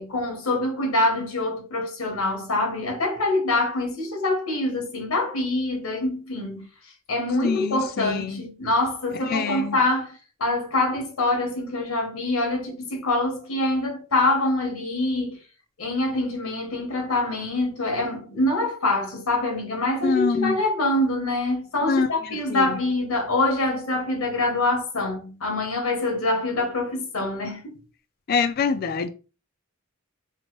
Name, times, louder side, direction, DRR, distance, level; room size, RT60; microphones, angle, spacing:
voice 1, 0.0-6.7 7.1-15.4 15.8-27.8, left 2 dB, 85° left, 0.8 m, -25 dB
voice 2, 7.4-8.4 9.3-9.8 20.0-20.6 21.8-22.8 28.3-29.1, left 5 dB, 45° left, 0.3 m, -25 dB
2.9 x 2.1 x 2.9 m
head